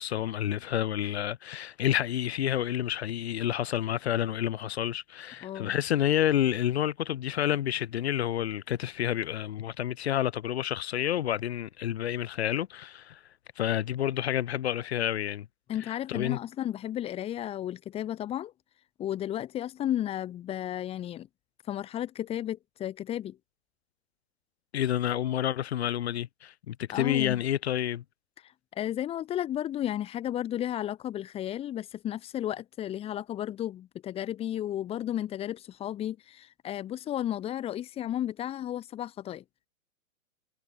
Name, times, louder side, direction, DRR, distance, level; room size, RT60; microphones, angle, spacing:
voice 1, 0.0-13.2 13.6-15.5 15.8-16.4 24.7-28.0, left 11 dB, 50° left, 7.4 m, -29 dB
voice 2, 5.4-5.7 15.7-18.5 19.0-21.3 21.7-23.4 26.9-27.4 28.7-39.4, left 11 dB, 15° left, 7.6 m, -33 dB
hypercardioid pair, 175°, 42 cm